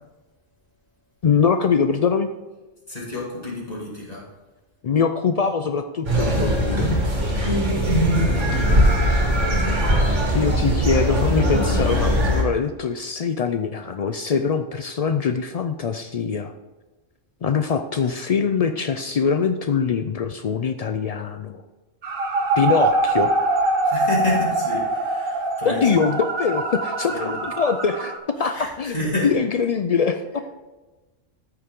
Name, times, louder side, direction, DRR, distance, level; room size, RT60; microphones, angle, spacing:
voice 1, 1.2-2.3 4.8-6.9 10.3-16.5 17.4-21.6 22.6-23.3 25.6-28.1 28.4-30.4, left 6 dB, 85° left, 8 dB, 0.3 m, -23 dB
voice 2, 2.9-4.2 7.6-7.7 8.0-8.2 23.9-25.9 27.1-27.3 28.5-29.3, left 2 dB, 30° left, -4 dB, 2.7 m, -29 dB
sound 1, 6.0-12.4, equal, 75° right, 2.4 m, -20 dB
sound 2, 22.0-28.2, right 2 dB, 50° right, 1.1 m, -23 dB
13.5 x 6.9 x 3.7 m, 1.2 s
omnidirectional pair, 1.3 m